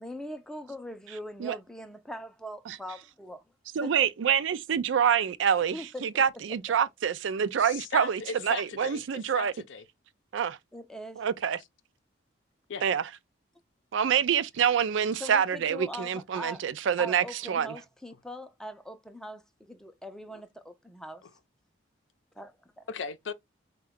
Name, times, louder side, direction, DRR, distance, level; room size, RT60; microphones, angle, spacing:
voice 1, 0.0-3.4 3.8-3.9 5.7-6.2 10.7-11.3 15.2-16.7 17.0-21.3 22.4-22.9, equal, 5° left, 0.4 m, -41 dB
voice 2, 3.8-9.5 10.3-10.6 11.2-11.6 12.8-13.0 13.9-17.7, right 8 dB, 70° right, 0.4 m, -26 dB
voice 3, 7.6-9.8 12.7-12.8 20.3-20.4 22.9-23.3, left 5 dB, 75° left, 0.5 m, -37 dB
4.3 x 2.2 x 3.6 m
head